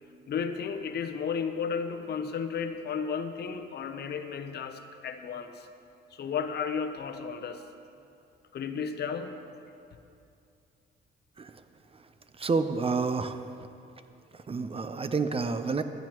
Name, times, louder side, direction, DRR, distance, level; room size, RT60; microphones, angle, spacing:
voice 1, 0.3-5.7 6.1-7.6 8.5-9.4, left 6 dB, 55° left, 8 dB, 0.7 m, -33 dB
voice 2, 12.4-13.4 14.3-15.8, right 4 dB, 30° right, 9 dB, 0.6 m, -29 dB
15.0 x 10.5 x 3.0 m, 2.6 s
cardioid pair, 90°, 20 cm